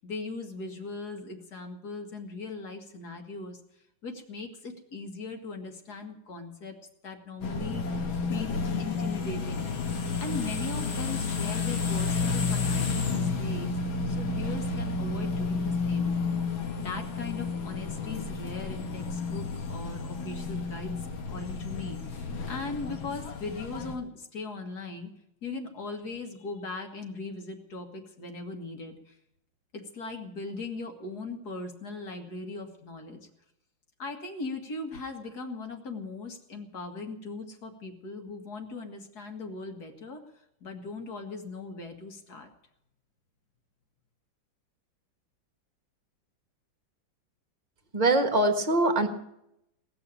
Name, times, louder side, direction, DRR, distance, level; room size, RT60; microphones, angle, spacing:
voice 1, 0.0-3.6 4.0-6.7 7.0-7.8 8.3-13.7 14.1-16.1 16.8-25.1 25.4-29.2 29.7-33.2 34.0-40.2 40.6-42.5, left 3 dB, 50° left, 4 dB, 2.3 m, -39 dB
sound 1, 7.4-24.0, left 4 dB, 85° left, 2.4 m, -31 dB
voice 2, 47.9-49.1, right 2 dB, 25° right, 6 dB, 1.4 m, -23 dB
18.5 x 7.0 x 9.9 m, 0.81 s
omnidirectional pair, 2.2 m